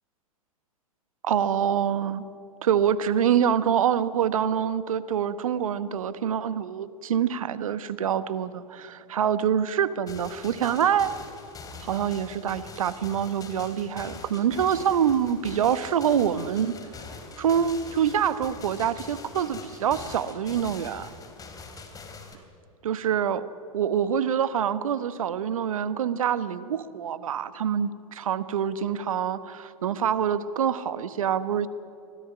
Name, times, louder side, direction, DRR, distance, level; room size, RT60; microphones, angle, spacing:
voice 1, 1.2-2.2 2.6-11.1 11.8-16.7 17.4-21.1 22.8-23.5 23.7-31.7, right 8 dB, 70° right, 15 dB, 1.1 m, -25 dB
sound 1, 10.1-22.4, left 4 dB, 20° left, 3.2 m, -43 dB
25.0 x 17.0 x 9.9 m, 2.7 s
figure-of-eight pair, 95°, 18 cm